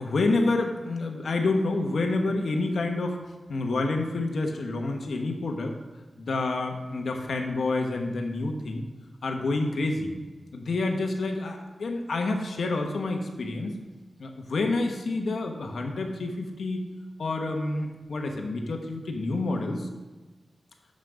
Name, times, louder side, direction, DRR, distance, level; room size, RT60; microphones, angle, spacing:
voice 1, 0.0-3.2 3.5-5.7 6.2-8.8 9.2-10.1 10.5-13.8 14.2-16.8 17.2-19.9, left 2 dB, 70° left, 3 dB, 1.1 m, -28 dB
6.4 x 5.8 x 6.4 m, 1.2 s
wide cardioid pair, 150°, 0 cm